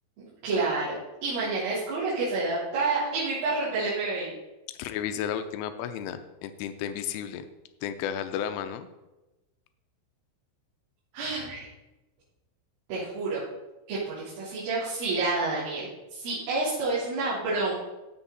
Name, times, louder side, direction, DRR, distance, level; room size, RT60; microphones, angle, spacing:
voice 1, 0.2-1.0 1.2-4.3 11.1-11.7 12.9-13.4 13.9-17.7, right 3 dB, 80° right, -11 dB, 6.3 m, -29 dB
voice 2, 4.8-7.4 7.8-8.9, left 9 dB, 85° left, 9 dB, 3.3 m, -33 dB
16.5 x 7.9 x 4.1 m, 1.0 s
omnidirectional pair, 5.7 m